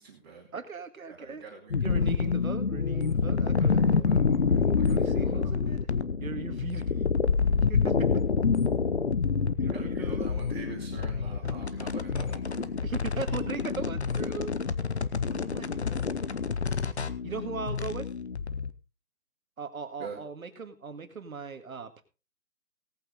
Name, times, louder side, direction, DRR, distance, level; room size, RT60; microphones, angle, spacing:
voice 1, 0.0-0.5 1.1-2.1 3.5-5.8 7.4-7.5 9.7-12.7 20.0-20.2, right 5 dB, 30° right, -3 dB, 2.7 m, -45 dB
voice 2, 0.5-1.4 1.8-4.1 4.8-5.8 6.2-7.0 7.7-8.1 9.6-10.3 11.2-11.7 12.8-14.5 15.3-16.1 17.2-18.1 19.6-22.0, right 5 dB, 60° right, 9 dB, 2.1 m, -39 dB
sound 1, 1.7-18.7, left 5 dB, 45° left, 0.8 m, -27 dB
18.0 x 8.6 x 3.8 m, 0.31 s
hypercardioid pair, 175°, 46 cm